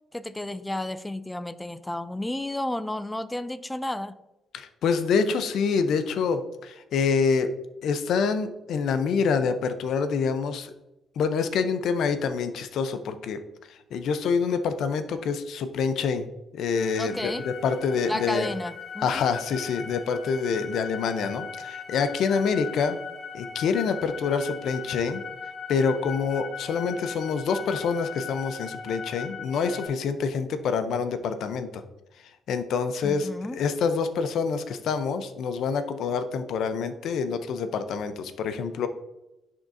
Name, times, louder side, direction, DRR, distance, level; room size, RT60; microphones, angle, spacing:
voice 1, 0.1-4.2 17.0-17.5 18.1-19.3 33.0-33.6, left 1 dB, 10° left, 14 dB, 0.4 m, -32 dB
voice 2, 4.5-7.5 7.8-10.7 11.2-13.4 13.9-16.3 16.5-17.3 17.6-18.5 19.0-23.0 23.3-25.2 25.7-31.8 32.5-38.9, left 5 dB, 75° left, 9 dB, 0.6 m, -26 dB
sound 1, 16.7-29.9, left 6 dB, 55° left, 1.0 m, -39 dB
10.5 x 3.7 x 2.7 m, 0.95 s
cardioid pair, 90°, 0 cm